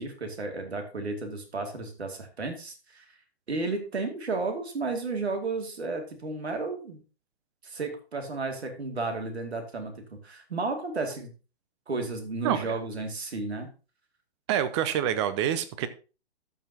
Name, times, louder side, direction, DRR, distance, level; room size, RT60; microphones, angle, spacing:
voice 1, 0.0-3.1 3.5-7.0 7.6-11.3 11.9-13.7, right 3 dB, 75° right, 5 dB, 2.5 m, -33 dB
voice 2, 12.4-12.8 14.5-15.9, right 10 dB, 25° right, 13 dB, 0.7 m, -27 dB
13.5 x 6.1 x 2.8 m, 0.33 s
figure-of-eight pair, 130°, 32 cm